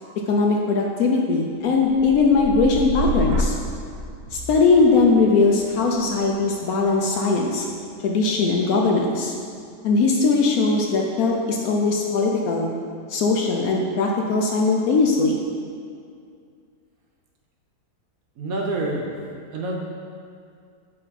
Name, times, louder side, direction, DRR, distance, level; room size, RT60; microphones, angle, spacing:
voice 1, 0.3-3.5 4.5-7.6 8.0-9.3 9.8-12.7 13.1-15.4, left 3 dB, 70° left, 0 dB, 0.9 m, -20 dB
sound 1, 1.6-9.7 10.1-10.6, equal, 85° right, 1.2 m, -32 dB
voice 2, 18.4-19.1 19.5-19.7, right 2 dB, 65° right, -1 dB, 1.0 m, -27 dB
7.5 x 3.3 x 4.0 m, 2.3 s
omnidirectional pair, 1.8 m